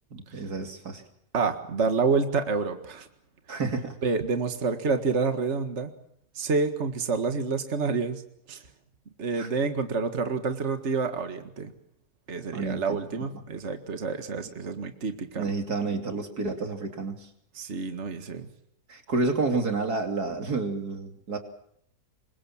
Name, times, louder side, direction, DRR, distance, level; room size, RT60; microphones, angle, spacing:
voice 1, 0.1-1.0 3.5-4.0 9.4-9.5 12.5-13.0 15.4-17.3 18.9-21.4, right 3 dB, 85° right, 5 dB, 3.4 m, -30 dB
voice 2, 1.3-3.1 4.0-5.9 6.4-8.2 8.5-8.6 9.2-11.7 12.3-15.5 17.5-18.5, right 4 dB, 45° right, 7 dB, 2.1 m, -28 dB
27.0 x 23.5 x 7.3 m, 0.70 s
omnidirectional pair, 1.6 m